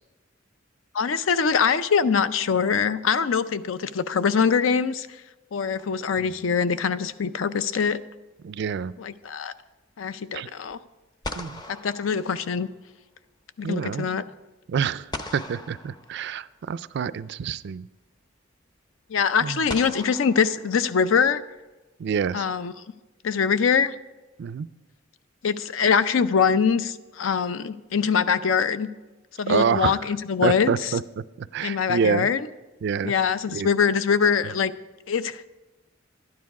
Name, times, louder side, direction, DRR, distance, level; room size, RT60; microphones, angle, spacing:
voice 1, 0.9-5.1 5.5-8.0 9.0-9.5 10.0-10.8 11.7-12.7 13.6-14.2 19.1-21.4 22.3-22.7 23.2-24.0 25.4-28.9 29.4-30.9 31.6-32.5 33.0-34.7 35.1-35.5, left 6 dB, 80° left, 14 dB, 0.5 m, -23 dB
sound 1, 5.7-6.6 10.7-10.8 11.2-13.0 15.1-16.7 18.0-18.1 19.7-21.3, left 2 dB, 20° left, 0.6 m, -39 dB
voice 2, 8.4-8.9 10.3-10.5 11.4-11.6 13.6-14.1 14.7-17.8 19.4-19.6 22.0-22.5 24.4-24.7 29.5-30.0 30.4-31.0 31.4-32.3 32.8-33.1 33.5-33.7, right 6 dB, 60° right, 17 dB, 0.3 m, -27 dB
12.0 x 9.5 x 4.8 m, 1.1 s
head